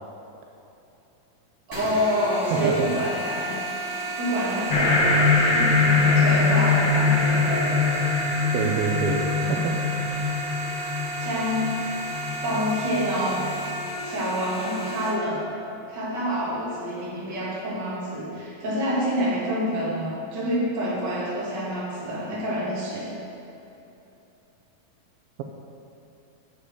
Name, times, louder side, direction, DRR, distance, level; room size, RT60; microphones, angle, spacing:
sound 1, 1.7-15.1, right 2 dB, 15° right, 0.7 m, -32 dB
voice 1, 1.7-3.5 4.2-7.9 11.2-11.8 12.4-13.4 14.0-15.5 15.9-23.1, equal, 35° right, -7 dB, 2.3 m, -27 dB
voice 2, 2.5-2.9 8.5-9.8, right 5 dB, 80° right, 1 dB, 2.4 m, -26 dB
sound 2, 4.7-13.6, left 4 dB, 70° left, 1.1 m, -23 dB
9.5 x 7.3 x 4.9 m, 2.9 s
omnidirectional pair, 4.3 m